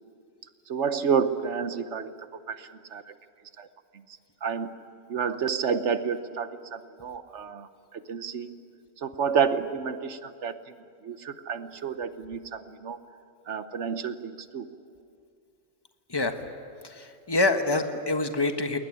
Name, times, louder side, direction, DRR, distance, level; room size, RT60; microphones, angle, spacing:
voice 1, 0.7-3.1 3.6-3.7 4.4-4.8 5.1-8.6 9.0-10.7 11.0-13.0 13.5-14.7, right 6 dB, 70° right, 11 dB, 1.3 m, -30 dB
voice 2, 16.8-18.8, left 2 dB, 20° left, 6 dB, 1.3 m, -26 dB
20.5 x 20.0 x 10.0 m, 2.4 s
omnidirectional pair, 1.3 m